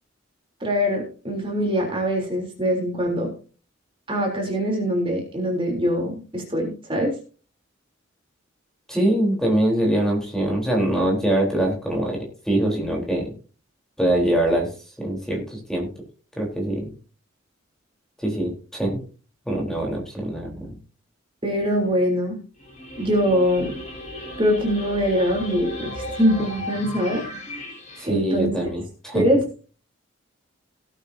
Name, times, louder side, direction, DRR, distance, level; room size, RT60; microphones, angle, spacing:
voice 1, 0.6-3.3 4.1-7.1 21.4-22.4 23.0-23.7 24.4-27.2 28.1-28.5 29.1-29.4, equal, 25° right, 0 dB, 3.7 m, -23 dB
voice 2, 8.9-13.3 14.0-14.7 15.0-15.9 16.4-16.9 18.2-19.0 19.5-20.8 28.0-29.2, right 1 dB, 5° left, -1 dB, 3.9 m, -23 dB
sound 1, 22.6-28.1, left 1 dB, 35° left, 5.1 m, -35 dB
18.0 x 8.9 x 2.8 m, 0.37 s
head